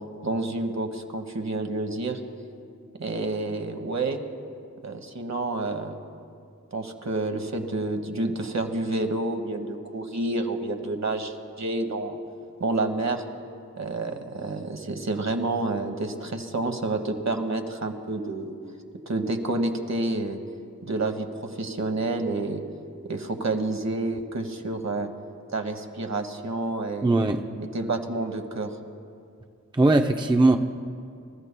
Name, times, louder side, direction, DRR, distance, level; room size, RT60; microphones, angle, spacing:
voice 1, 0.2-2.2 3.0-4.2 4.8-6.0 6.7-12.2 12.6-13.2 13.8-18.5 19.1-20.4 20.8-22.6 23.0-25.1 25.5-27.2 27.7-28.7, right 2 dB, 55° right, 5 dB, 1.3 m, -29 dB
voice 2, 27.0-27.4 29.7-30.6, right 2 dB, 15° right, 4 dB, 0.6 m, -19 dB
27.0 x 13.5 x 2.2 m, 2.4 s
cardioid pair, 45°, 32 cm